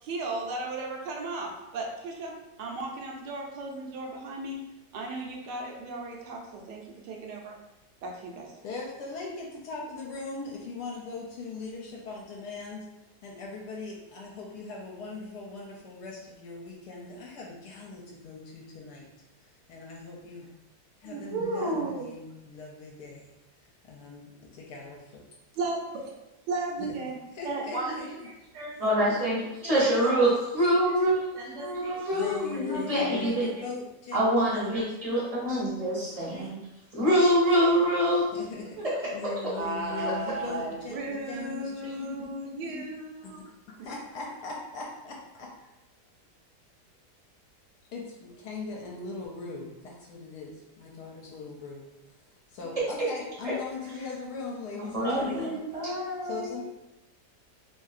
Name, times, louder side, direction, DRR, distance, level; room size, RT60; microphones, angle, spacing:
voice 1, 0.0-4.6 4.9-7.5 8.0-8.5 25.6-26.2 26.5-27.2 39.6-43.5, right 2 dB, 80° right, 1 dB, 1.2 m, -35 dB
voice 2, 8.6-12.9 13.2-19.1 19.4-20.5 21.0-23.3 23.9-25.2 26.8-27.0 27.3-28.1 32.1-35.2 38.3-38.8 39.1-42.3 43.2-45.5 47.9-51.9 52.5-55.9 56.2-56.6, left 4 dB, 75° left, -2 dB, 1.1 m, -40 dB
voice 3, 21.0-22.2 27.4-29.1 29.6-30.2 31.3-33.6 36.1-36.5 38.8-39.0 40.1-40.4 52.6-52.8 55.0-56.6, right 2 dB, 60° right, -6 dB, 0.9 m, -35 dB
voice 4, 28.8-33.5 34.1-36.6 36.9-38.3 54.9-55.4, equal, 35° right, -7 dB, 0.6 m, -25 dB
3.1 x 2.7 x 2.4 m, 0.95 s
omnidirectional pair, 1.8 m